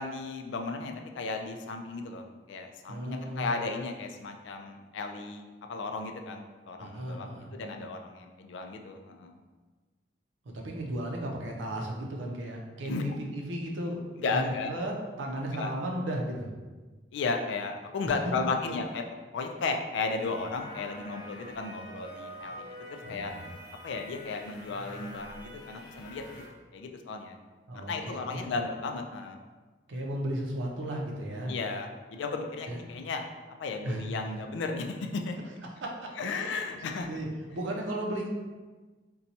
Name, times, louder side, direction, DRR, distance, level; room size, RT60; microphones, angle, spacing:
voice 1, 0.0-7.3 7.5-9.3 12.8-13.0 14.2-14.7 15.5-15.7 17.1-19.0 19.3-23.3 23.8-26.4 26.7-27.4 27.7-29.4 31.5-33.2 33.6-35.4 36.2-37.2, left 4 dB, 80° left, 4 dB, 0.3 m, -34 dB
voice 2, 2.9-3.5 6.8-7.5 10.5-16.5 23.0-23.5 27.7-28.5 29.9-31.5 32.7-32.8 33.8-34.1 35.8-36.5 36.7-38.3, right 1 dB, 90° right, 0 dB, 0.6 m, -35 dB
sound 1, 20.1-26.5, equal, 20° left, 0.5 m, -46 dB
2.8 x 2.2 x 3.9 m, 1.3 s
head